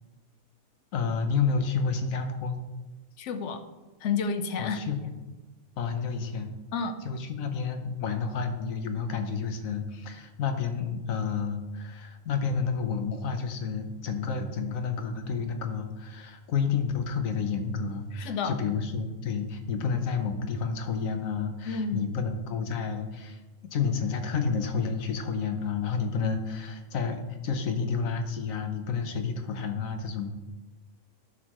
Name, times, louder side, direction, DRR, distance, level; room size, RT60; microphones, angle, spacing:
voice 1, 0.9-2.6 4.6-5.1 5.8-6.5 7.0-30.3, left 5 dB, 90° left, 6 dB, 1.3 m, -30 dB
voice 2, 3.2-3.6 4.0-4.8 6.7-6.9 18.1-18.5 21.7-22.0, left 5 dB, 65° left, 9 dB, 1.0 m, -30 dB
11.0 x 6.5 x 3.0 m, 1.1 s
omnidirectional pair, 1.4 m